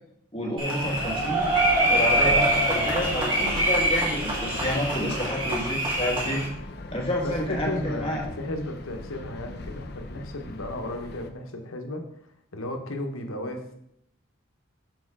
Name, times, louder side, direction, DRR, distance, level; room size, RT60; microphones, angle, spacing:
voice 1, 0.3-1.5 1.9-6.4 6.9-8.2, equal, 25° left, -2 dB, 1.6 m, -29 dB
sound 1, 0.6-6.5, right 1 dB, 25° right, 1.6 m, -24 dB
sound 2, 0.8-11.3, left 1 dB, 50° left, 0.6 m, -38 dB
voice 2, 7.2-12.1 12.5-13.7, left 1 dB, 90° left, 5 dB, 1.0 m, -34 dB
6.5 x 4.4 x 4.7 m, 0.73 s
head